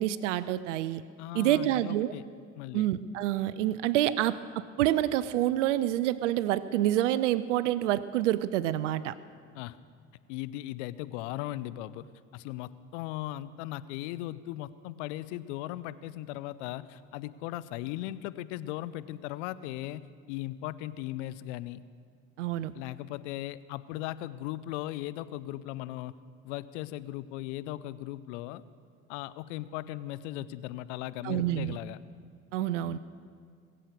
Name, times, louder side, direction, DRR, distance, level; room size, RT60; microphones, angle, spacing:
voice 1, 0.0-1.0 1.3-2.1 2.7-9.2 22.4-22.7 31.2-31.8 32.5-33.0, right 13 dB, 85° right, 17 dB, 0.5 m, -27 dB
voice 2, 1.2-2.2 2.6-2.9 9.6-9.8 10.3-12.1 12.3-21.8 22.7-26.1 26.4-28.6 29.1-32.0, left 15 dB, 80° left, 16 dB, 0.6 m, -38 dB
21.0 x 7.8 x 6.6 m, 2.1 s
hypercardioid pair, 60°, 36 cm